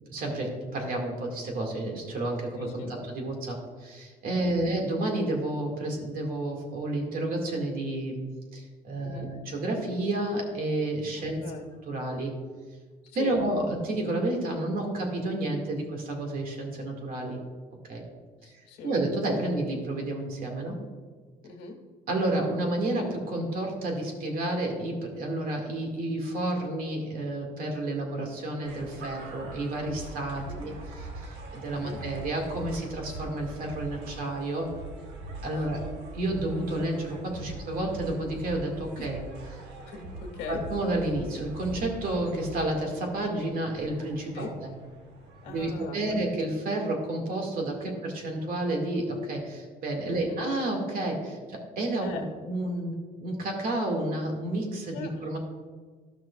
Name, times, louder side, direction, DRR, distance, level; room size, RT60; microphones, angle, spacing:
voice 1, 0.1-8.2 8.5-11.4 11.8-12.3 13.1-17.4 17.9-18.0 18.4-20.8 22.1-34.7 35.4-35.8 36.1-39.2 39.5-39.6 40.5-44.7 45.5-52.9 53.2-55.4, right 1 dB, 60° right, 1 dB, 2.1 m, -30 dB
voice 2, 2.6-2.9 4.4-4.7 9.0-9.3 11.4-11.7 13.2-13.4 18.4-18.9 21.4-21.8 30.4-30.6 31.8-32.0 35.7-35.9 39.0-39.1 39.8-40.6 44.3-44.5 45.4-46.2 50.1-50.4 52.0-52.2 54.9-55.4, left 4 dB, 85° left, 2 dB, 1.5 m, -40 dB
sound 1, 28.6-46.2, right 2 dB, 85° right, 1.1 m, -42 dB
13.0 x 6.1 x 2.4 m, 1.5 s
cardioid pair, 110°, 17 cm